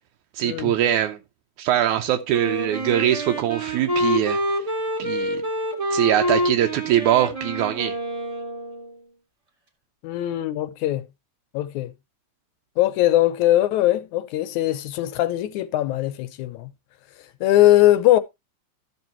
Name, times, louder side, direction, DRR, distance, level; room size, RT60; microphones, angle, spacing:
voice 1, 0.4-1.2 1.6-4.4 5.0-5.4 5.9-8.0, right 11 dB, 80° right, 2.1 m, -22 dB
Wind instrument woodwind instrument, 2.3-9.0, equal, 15° right, 1.5 m, -27 dB
voice 2, 10.0-11.1 11.5-11.9 12.8-16.7 17.4-18.2, left 14 dB, 85° left, 2.1 m, -20 dB
14.0 x 6.2 x 2.9 m
omnidirectional pair, 3.4 m